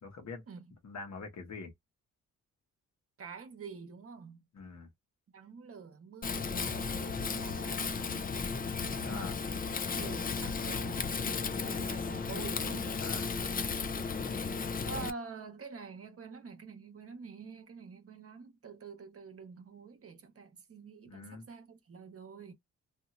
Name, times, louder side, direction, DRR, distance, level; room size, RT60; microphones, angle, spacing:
voice 1, 0.0-0.4 0.8-1.7 4.5-4.9 9.0-9.3 13.0-13.3 21.1-21.4, left 4 dB, 65° left, 1.2 m, -44 dB
voice 2, 3.2-4.5 5.3-7.9 9.9-11.2 11.6-13.1 14.8-22.5, right 5 dB, 50° right, 0.9 m, -47 dB
Wind, 6.2-15.1, left 5 dB, 30° left, 0.4 m, -34 dB
2.8 x 2.8 x 2.4 m
cardioid pair, 85°, 30 cm